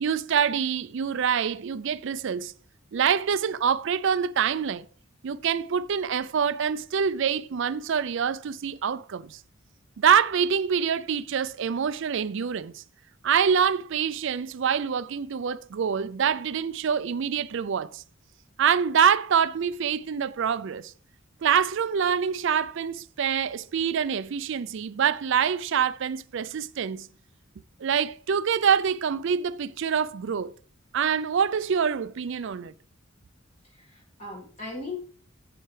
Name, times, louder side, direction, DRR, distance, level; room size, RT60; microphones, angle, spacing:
voice 1, 0.0-2.5 2.9-4.8 5.2-9.4 10.0-12.8 13.2-18.0 18.6-20.9 21.4-27.1 27.8-30.5 30.9-32.7, right 7 dB, 60° right, 0.4 m, -25 dB
voice 2, 33.6-35.0, left 3 dB, 35° left, 2.1 m, -38 dB
9.9 x 7.8 x 3.2 m
head